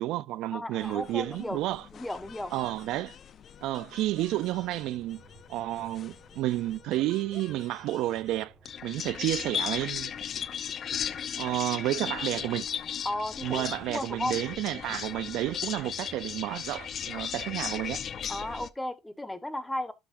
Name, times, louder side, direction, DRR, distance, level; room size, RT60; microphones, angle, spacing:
voice 1, 0.0-1.9 2.5-3.2 3.6-5.2 5.5-8.5 8.8-10.1 11.4-12.7 13.4-18.0, right 15 dB, 70° right, 0.5 m, -31 dB
voice 2, 0.5-1.6 1.9-2.5 13.0-14.4 18.3-19.9, left 1 dB, 10° left, 1.2 m, -34 dB
sound 1, 0.8-18.7, left 8 dB, 45° left, 0.7 m, -37 dB
sound 2, 4.6-18.3, right 2 dB, 20° right, 3.5 m, -57 dB
11.5 x 6.2 x 2.6 m
cardioid pair, 110°, 0 cm